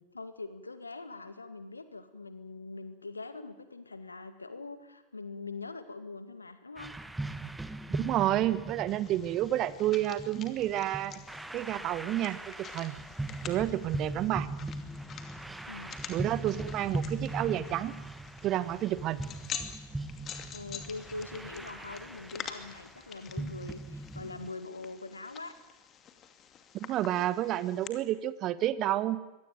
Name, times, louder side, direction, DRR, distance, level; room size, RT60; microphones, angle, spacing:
voice 1, 0.1-6.9 15.6-16.0 20.5-25.5, left 3 dB, 80° left, 10 dB, 2.1 m, -43 dB
sound 1, 6.8-24.5, right 2 dB, 5° right, 1.2 m, -40 dB
voice 2, 7.9-11.1 11.5-13.0 13.5-14.5 16.1-17.9 18.4-19.2 26.7-29.2, right 13 dB, 35° right, 16 dB, 1.4 m, -30 dB
sound 2, 8.9-27.9, left 8 dB, 30° left, 2.6 m, -47 dB
24.5 x 18.5 x 9.4 m, 1.1 s
figure-of-eight pair, 90°, 0 cm